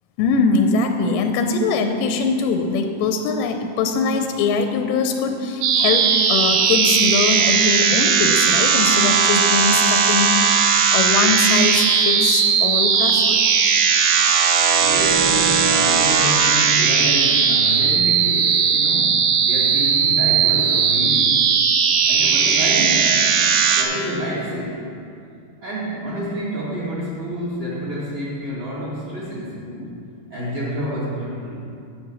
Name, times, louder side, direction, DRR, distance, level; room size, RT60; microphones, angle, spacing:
voice 1, 0.2-10.4 10.9-13.4, left 4 dB, 80° left, 5 dB, 2.0 m, -22 dB
sound 1, 5.6-23.8, right 6 dB, 80° right, 1.7 m, -17 dB
voice 2, 14.8-21.4 22.1-23.4 23.8-24.9 25.6-29.9 30.3-31.6, equal, 45° right, -7 dB, 2.8 m, -28 dB
8.1 x 7.7 x 6.0 m, 2.4 s
omnidirectional pair, 4.2 m